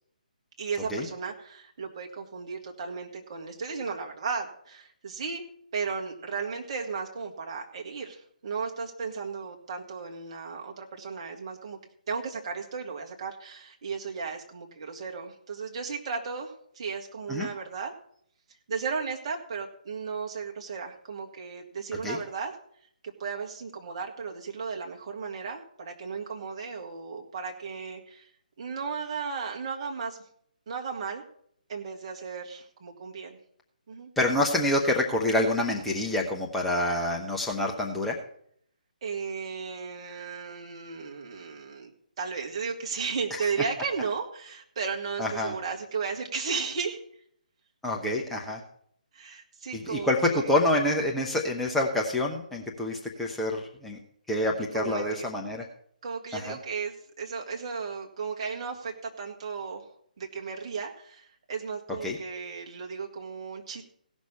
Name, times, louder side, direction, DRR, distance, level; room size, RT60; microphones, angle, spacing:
voice 1, 0.6-5.4 5.7-11.8 12.1-17.9 18.7-22.5 23.0-28.3 28.6-30.2 30.7-31.2 31.7-33.4 33.9-34.1 39.0-41.9 42.2-47.0 49.1-50.5 54.7-55.3 56.0-63.8, right 5 dB, 40° right, 1 dB, 1.9 m, -35 dB
voice 2, 34.2-38.2 45.2-45.5 47.8-48.6 49.7-54.0 54.3-55.6 56.3-56.6 62.0-62.2, left 1 dB, 5° left, -2 dB, 0.8 m, -27 dB
16.5 x 6.2 x 5.6 m, 0.66 s
figure-of-eight pair, 140°, 5 cm